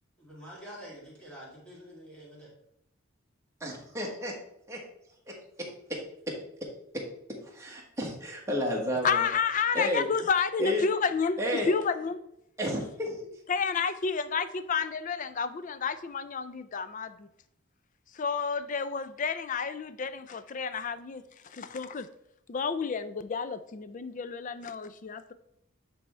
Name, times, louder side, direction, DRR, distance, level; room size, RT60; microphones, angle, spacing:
voice 1, 0.2-2.5, equal, 5° left, -6 dB, 2.3 m, -47 dB
voice 2, 3.6-4.3 4.7-4.8 5.3-5.4 5.9-6.0 6.3-6.4 7.4-9.3 9.7-10.1 10.6-10.9 11.4-11.7 12.6-13.2, left 1 dB, 15° right, -2 dB, 1.3 m, -31 dB
voice 3, 9.0-12.2 13.5-17.3 18.1-22.1 22.5-25.3, left 5 dB, 40° left, 13 dB, 0.4 m, -30 dB
8.6 x 3.5 x 4.3 m, 0.76 s
head